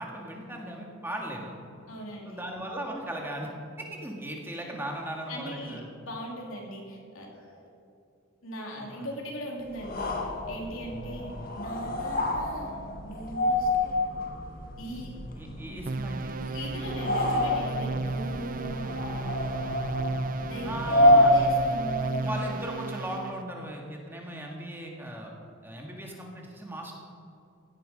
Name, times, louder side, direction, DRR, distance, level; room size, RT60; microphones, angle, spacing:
voice 1, 0.0-1.6 2.3-3.5 3.8-5.9 8.8-9.1 15.3-16.4 20.6-21.3 22.2-25.3 25.6-26.9, right 1 dB, 10° right, 0 dB, 1.8 m, -37 dB
voice 2, 1.9-2.5 5.3-7.7 8.4-12.7 13.0-14.0 14.8-15.1 16.3-19.7 20.4-22.5, equal, 85° left, -1 dB, 3.2 m, -39 dB
sound 1, 9.7-22.3, left 1 dB, 45° left, 1.4 m, -27 dB
sound 2, 15.9-23.4, right 3 dB, 40° right, 0.4 m, -34 dB
16.5 x 11.0 x 5.3 m, 2.5 s
head